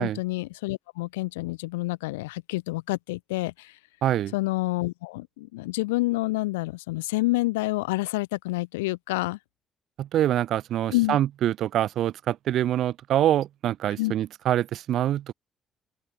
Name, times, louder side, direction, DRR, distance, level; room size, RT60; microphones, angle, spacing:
voice 1, 0.0-3.7 4.3-9.4 10.9-11.2 14.0-14.1, left 21 dB, 90° left, 0.3 m, -28 dB
voice 2, 4.0-4.3 10.0-15.3, right 12 dB, 70° right, 0.5 m, -25 dB
hypercardioid pair, 45°, 0 cm